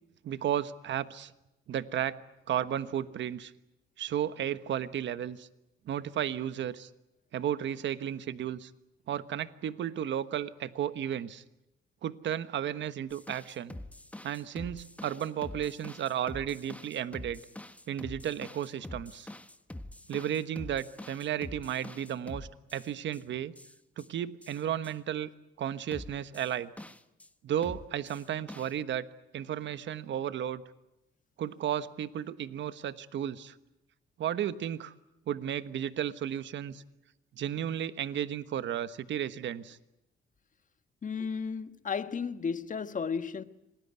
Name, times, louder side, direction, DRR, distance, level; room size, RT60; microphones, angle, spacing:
voice 1, 0.2-1.3 1.7-2.1 2.5-3.5 4.0-5.5 5.9-6.9 7.3-8.7 9.1-11.4 12.0-13.7 14.2-17.4 17.9-19.3 20.1-23.5 24.0-25.3 25.6-26.7 27.4-29.1 29.3-30.6 31.4-33.5 34.2-34.9 35.3-36.8 37.4-39.8, right 10 dB, 65° right, 1.3 m, -33 dB
sound 1, 13.1-23.2 23.6-24.1 24.4-24.9 25.9-27.3 27.6-28.7, left 1 dB, 5° left, 1.4 m, -45 dB
voice 2, 41.0-43.4, left 6 dB, 40° left, 1.5 m, -33 dB
27.0 x 19.5 x 9.6 m
cardioid pair, 90°, 20 cm